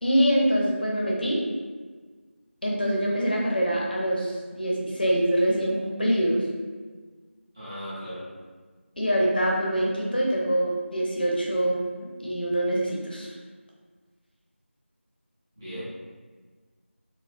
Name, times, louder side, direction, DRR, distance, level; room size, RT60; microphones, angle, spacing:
voice 1, 0.0-1.4 2.6-6.4 9.0-11.8 12.2-13.3, equal, 45° left, -3 dB, 0.8 m, -24 dB
voice 2, 7.5-8.3 15.6-15.8, equal, 15° right, -14 dB, 1.0 m, -37 dB
4.1 x 2.7 x 2.5 m, 1.4 s
figure-of-eight pair, 175°, 7 cm